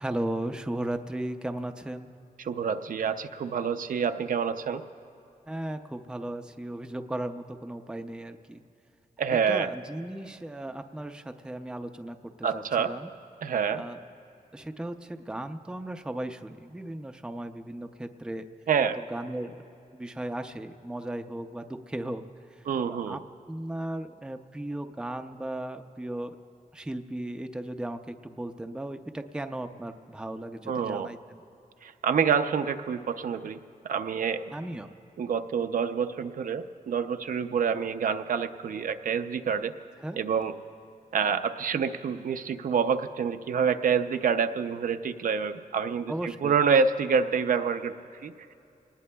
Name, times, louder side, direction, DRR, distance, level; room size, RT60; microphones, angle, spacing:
voice 1, 0.0-2.1 5.5-8.6 9.5-13.1 13.7-14.0 14.5-18.5 19.0-19.6 19.9-23.2 23.5-26.4 26.7-31.4 34.5-34.9 40.0-40.2 46.1-46.6, right 1 dB, 5° right, 6 dB, 0.4 m, -36 dB
voice 2, 2.4-4.8 9.2-9.7 12.4-12.9 13.4-13.8 18.7-19.0 22.7-23.2 30.7-31.1 31.8-33.6 33.8-34.5 35.2-39.7 40.2-40.5 41.1-47.9 48.2-48.5, right 6 dB, 70° right, 8 dB, 0.5 m, -27 dB
25.5 x 19.0 x 2.2 m, 2.7 s
wide cardioid pair, 165°, 15 cm